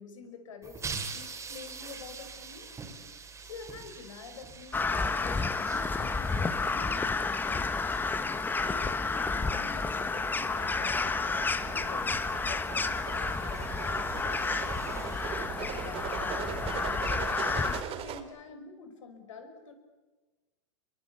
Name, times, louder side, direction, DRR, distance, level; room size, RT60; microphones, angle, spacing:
voice 1, 0.0-3.0 3.4-7.7 8.6-14.9 15.2-19.7, left 5 dB, 85° left, 7 dB, 5.5 m, -48 dB
sound 1, 0.6-16.0, right 5 dB, 15° right, 3.7 m, -46 dB
Crow, 4.7-17.8, left 4 dB, 10° left, 1.2 m, -31 dB
sound 2, 10.5-18.2, right 8 dB, 40° right, 2.8 m, -40 dB
26.5 x 22.5 x 8.5 m, 1.2 s
hypercardioid pair, 120°, 16 cm